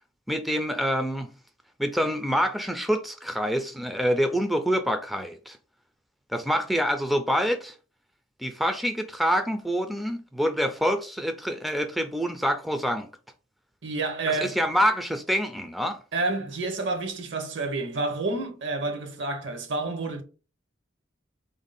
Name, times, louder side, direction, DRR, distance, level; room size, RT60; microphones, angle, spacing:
voice 1, 0.3-1.3 1.8-5.6 6.3-7.7 8.4-13.1 14.4-16.0, equal, ahead, 0.3 m, -26 dB
voice 2, 13.8-14.6 16.1-20.2, right 3 dB, 70° right, 0.8 m, -29 dB
3.5 x 2.6 x 4.0 m
head